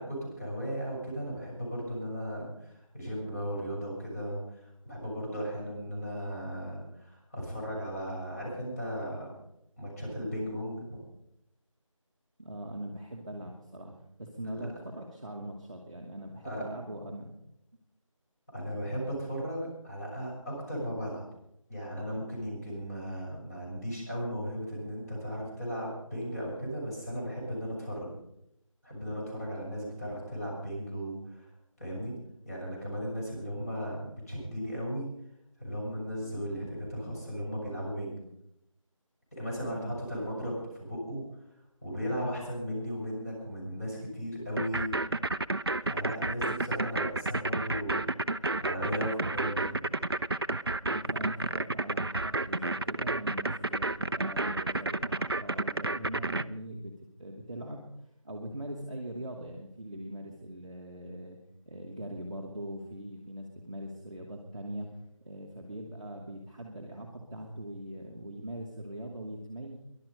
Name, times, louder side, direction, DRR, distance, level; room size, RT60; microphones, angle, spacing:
voice 1, 0.0-9.3 9.8-11.0 14.4-14.6 16.4-16.6 18.5-21.2 21.7-28.1 28.8-31.5 31.8-32.2 32.4-35.1 35.6-38.2 39.3-41.2 41.8-45.0 45.8-48.0 48.6-49.8, equal, 25° left, -4 dB, 6.5 m, -36 dB
voice 2, 12.4-13.9 14.2-17.3 39.6-39.9 50.8-56.9 57.2-57.8 58.2-61.4 61.6-65.0 65.2-69.8, right 1 dB, 10° right, -7 dB, 0.9 m, -41 dB
sound 1, 44.6-56.4, right 2 dB, 45° right, 0.5 m, -30 dB
19.5 x 11.5 x 5.4 m, 0.80 s
figure-of-eight pair, 175°, 17 cm